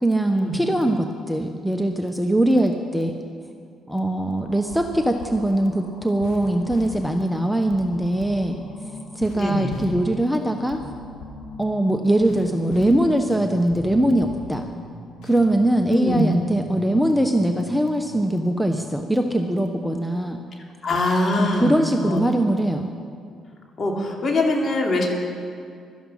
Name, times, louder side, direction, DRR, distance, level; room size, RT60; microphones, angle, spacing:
voice 1, 0.0-3.1 3.9-8.6 9.1-10.8 11.6-14.6 15.2-20.4 21.4-22.9, right 1 dB, ahead, 5 dB, 1.0 m, -21 dB
sound 1, 4.4-18.9, left 2 dB, 80° left, 2.2 m, -40 dB
voice 2, 9.3-9.7 15.9-16.3 20.8-22.2 23.8-25.1, left 1 dB, 45° left, 0 dB, 2.8 m, -23 dB
16.5 x 12.5 x 5.7 m, 2.3 s
supercardioid pair, 65°, 0 cm